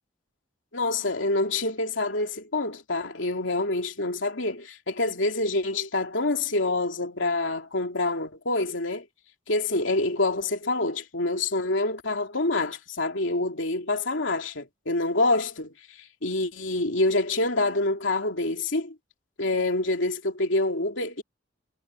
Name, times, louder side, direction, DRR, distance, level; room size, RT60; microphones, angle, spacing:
voice 1, 0.7-9.1 9.5-18.9 19.4-21.2, left 2 dB, 75° left, 3.0 m, -26 dB
head